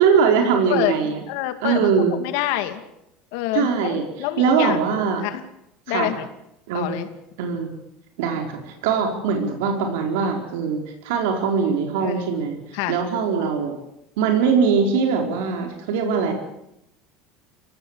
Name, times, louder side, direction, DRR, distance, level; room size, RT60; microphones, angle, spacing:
voice 1, 0.0-1.2 1.6-2.1 3.5-4.0 4.4-5.2 5.9-6.1 6.7-7.0 7.4-7.8 8.2-12.6 12.9-13.7 14.2-16.3, right 6 dB, 85° right, 3 dB, 4.5 m, -21 dB
voice 2, 0.7-2.8 3.3-4.9 5.2-5.4 5.9-6.3 6.7-7.1 12.0-12.5 12.7-13.0, left 14 dB, 65° left, 9 dB, 2.5 m, -27 dB
24.5 x 17.5 x 8.3 m, 0.81 s
cardioid pair, 175°, 0 cm